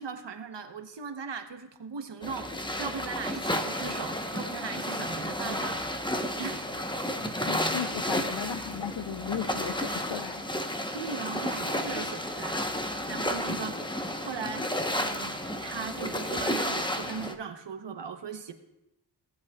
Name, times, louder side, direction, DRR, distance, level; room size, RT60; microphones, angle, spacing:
voice 1, 0.0-5.8 6.4-6.7 10.9-12.7 13.1-13.8 14.2-18.5, right 5 dB, 70° right, 8 dB, 1.0 m, -38 dB
sound 1, 2.2-17.3, left 1 dB, 10° left, 0.9 m, -32 dB
voice 2, 7.4-10.4, left 9 dB, 75° left, 13 dB, 0.6 m, -35 dB
17.0 x 7.8 x 2.3 m, 0.91 s
cardioid pair, 45°, 44 cm